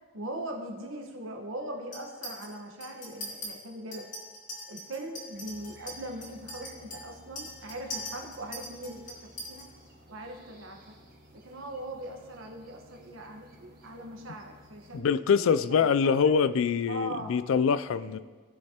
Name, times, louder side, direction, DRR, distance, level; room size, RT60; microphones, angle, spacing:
voice 1, 0.1-4.1 4.7-9.7 10.1-11.0 11.3-16.3 16.9-17.3 17.9-18.2, right 1 dB, 85° right, 1.3 m, -40 dB
Chink clink, 1.9-2.5 2.8-3.5 3.9-9.6, equal, 40° left, 2.4 m, -41 dB
sound 1, 5.3-15.0, equal, 45° right, 1.6 m, -55 dB
voice 2, 14.9-18.2, left 6 dB, 80° left, 0.3 m, -24 dB
16.5 x 6.5 x 2.9 m
head